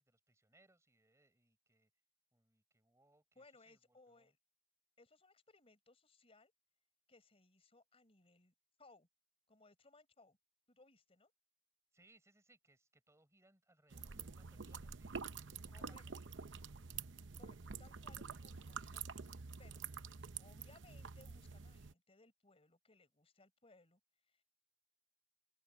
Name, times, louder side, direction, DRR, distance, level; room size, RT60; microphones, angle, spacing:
voice 1, 0.0-1.9 2.3-4.3 11.9-16.7, right 2 dB, 15° right, 4.2 m, -72 dB
voice 2, 3.3-4.4 5.0-6.5 7.1-9.1 9.5-10.4 10.7-11.3 15.7-16.0 17.4-19.8 20.4-24.4, left 3 dB, 30° left, 4.4 m, -66 dB
sound 1, 13.9-21.9, right 5 dB, 75° right, 0.8 m, -48 dB
open air
head